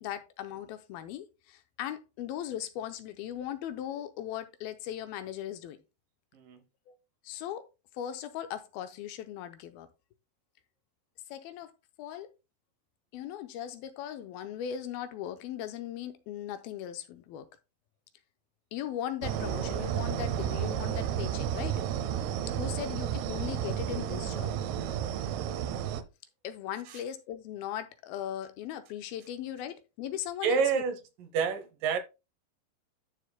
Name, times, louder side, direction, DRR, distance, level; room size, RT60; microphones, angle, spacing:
voice 1, 0.0-5.8 6.9-7.0 7.2-7.7 7.9-9.9 11.3-11.7 12.0-12.3 13.1-17.5 18.7-21.8 22.5-24.5 26.4-30.8, left 10 dB, 80° left, 2.5 m, -38 dB
sound 1, 19.2-26.0, right 9 dB, 90° right, 2.8 m, -32 dB
voice 2, 30.4-30.9 31.3-32.0, right 6 dB, 70° right, 2.3 m, -28 dB
12.0 x 6.8 x 2.2 m
omnidirectional pair, 4.4 m